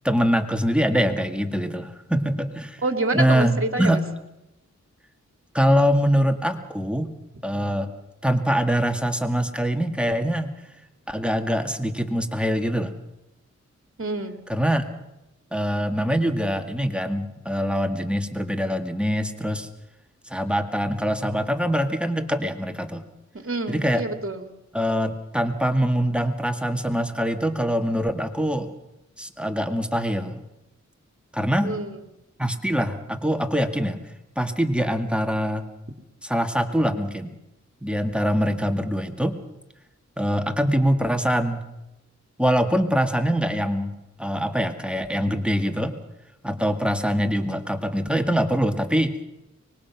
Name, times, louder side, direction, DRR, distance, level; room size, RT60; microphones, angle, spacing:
voice 1, 0.0-2.8 3.1-4.0 5.5-7.1 7.4-7.9 8.2-10.5 11.1-12.9 14.5-14.8 15.5-19.7 20.3-23.0 23.7-24.0 24.7-28.7 29.2-30.4 31.3-31.7 32.4-35.6 36.2-37.3 37.8-39.4 40.2-41.6 42.4-45.9 46.4-49.1, equal, 5° right, 7 dB, 2.0 m, -24 dB
voice 2, 2.8-3.9 14.0-14.4 23.3-24.5 31.6-31.9, right 2 dB, 45° right, 6 dB, 2.7 m, -27 dB
24.0 x 21.0 x 6.0 m, 0.91 s
cardioid pair, 55°, 30 cm